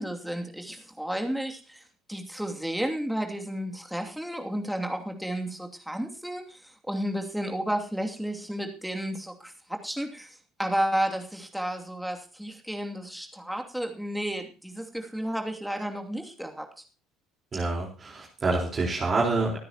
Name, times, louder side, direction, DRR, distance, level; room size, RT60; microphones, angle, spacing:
voice 1, 0.0-1.8 2.1-10.3 10.6-16.7, right 1 dB, ahead, 3 dB, 2.6 m, -32 dB
voice 2, 17.5-19.6, right 3 dB, 35° right, -3 dB, 4.2 m, -27 dB
24.5 x 9.7 x 3.0 m, 0.33 s
figure-of-eight pair, 60°, 0 cm